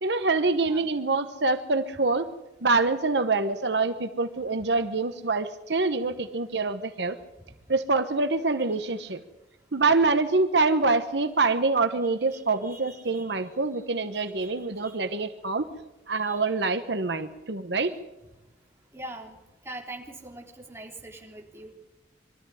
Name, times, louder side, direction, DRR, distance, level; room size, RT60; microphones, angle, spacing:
voice 1, 0.0-2.3 2.6-7.2 7.7-9.2 9.7-15.7 16.1-18.0, right 3 dB, 70° right, 8 dB, 1.1 m, -25 dB
voice 2, 12.3-13.3 14.1-15.0 16.1-16.4 17.8-17.9 18.9-19.4 19.6-21.7, right 1 dB, 15° right, 1 dB, 3.5 m, -44 dB
22.5 x 13.5 x 10.0 m, 0.97 s
head